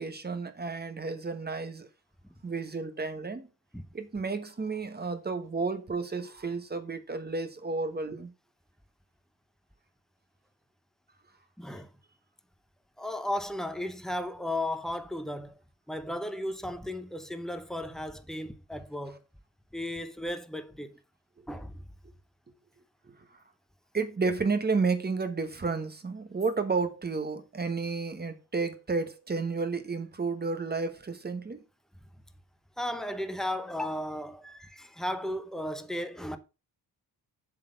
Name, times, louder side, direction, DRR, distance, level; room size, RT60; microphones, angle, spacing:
voice 1, 0.0-1.9 2.4-3.5 3.9-8.3 23.1-23.3 23.9-31.6, right 4 dB, 25° right, 1.1 m, -31 dB
voice 2, 11.6-11.9 13.0-15.5 15.9-19.2 19.7-21.0 21.5-21.8 32.8-36.4, left 1 dB, ahead, 0.7 m, -35 dB
7.4 x 4.1 x 6.4 m
wide cardioid pair, 140°, 40 cm